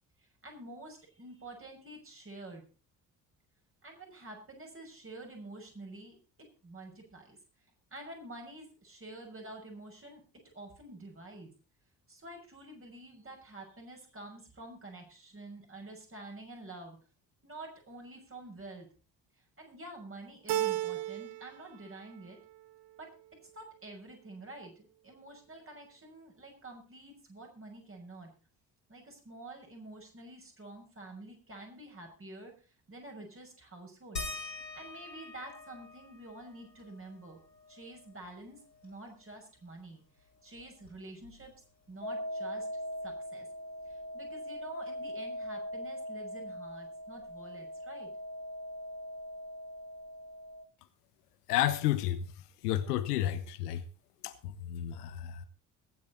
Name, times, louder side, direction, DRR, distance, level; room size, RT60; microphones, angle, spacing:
voice 1, 0.2-2.6 3.8-6.1 6.6-7.4 7.9-10.2 10.5-11.5 12.1-17.0 17.4-18.9 19.6-22.4 23.0-23.1 23.5-28.3 28.9-32.5 32.9-34.2 34.7-37.4 37.7-40.0 40.4-41.5 41.9-42.7 43.0-43.5 43.8-48.1, right 2 dB, 25° right, 6.1 m, -48 dB
Keyboard (musical), 20.5-21.6 21.9-22.7, right 13 dB, 55° right, 1.3 m, -34 dB
sound 1, 34.2-39.3 39.6-39.7 40.1-41.8 43.1-43.2 43.9-44.0, left 2 dB, 90° left, 1.9 m, -46 dB
sound 2, 42.0-50.6, equal, 15° left, 3.7 m, -41 dB
voice 2, 51.5-52.2 52.6-53.8 54.2-55.5, left 12 dB, 65° left, 1.1 m, -31 dB
22.0 x 8.5 x 4.1 m
figure-of-eight pair, 50°, 49 cm